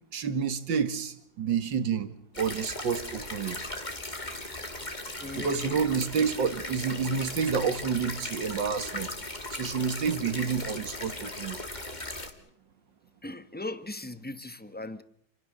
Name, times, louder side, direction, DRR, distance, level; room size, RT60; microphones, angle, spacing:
voice 1, 0.1-2.1 2.4-3.6 5.4-9.1 9.5-11.6, right 6 dB, 85° right, 2.3 m, -29 dB
sound 1, 2.3-12.3, left 2 dB, 25° left, 2.4 m, -38 dB
voice 2, 5.2-5.8 11.8-12.0 13.2-15.0, left 2 dB, 5° left, 0.9 m, -38 dB
28.5 x 21.5 x 6.6 m
omnidirectional pair, 2.0 m